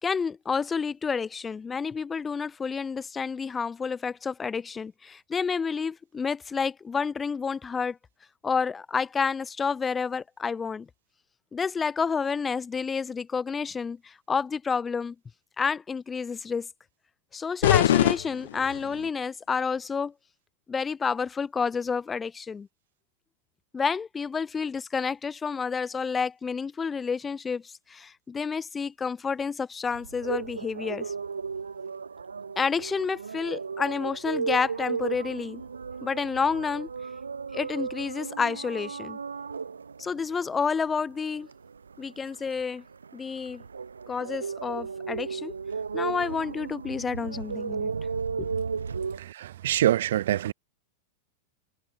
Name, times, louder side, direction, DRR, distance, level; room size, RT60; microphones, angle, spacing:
voice 1, 0.0-8.0 8.4-10.9 11.5-15.1 15.6-16.7 17.3-20.1 20.7-22.7 23.7-31.1 32.6-35.6 36.0-36.9 37.5-39.2 40.0-41.5 42.0-42.8 43.1-43.6 44.1-45.5 45.9-47.9 48.4-48.5, left 5 dB, 15° left, 4.3 m, -29 dB
sound 1, 17.6-19.1, left 11 dB, 60° left, 1.0 m, -23 dB
sound 2, 29.9-49.2, right 5 dB, 75° right, 5.4 m, -35 dB
voice 2, 49.1-50.5, right 12 dB, 60° right, 4.6 m, -25 dB
figure-of-eight pair, 90°, 0 cm